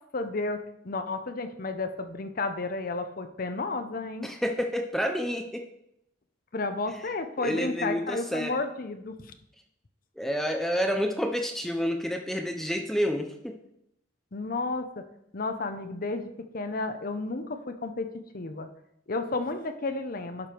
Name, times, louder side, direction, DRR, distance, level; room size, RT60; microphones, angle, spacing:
voice 1, 0.1-0.6 0.8-4.3 6.5-9.3 14.3-15.0 15.3-16.3 16.5-18.1 18.3-18.7 19.1-20.5, left 3 dB, 45° left, 8 dB, 0.7 m, -32 dB
voice 2, 4.2-5.7 7.4-8.5 10.2-13.6, equal, ahead, 4 dB, 0.5 m, -29 dB
11.0 x 5.2 x 4.5 m, 0.79 s
head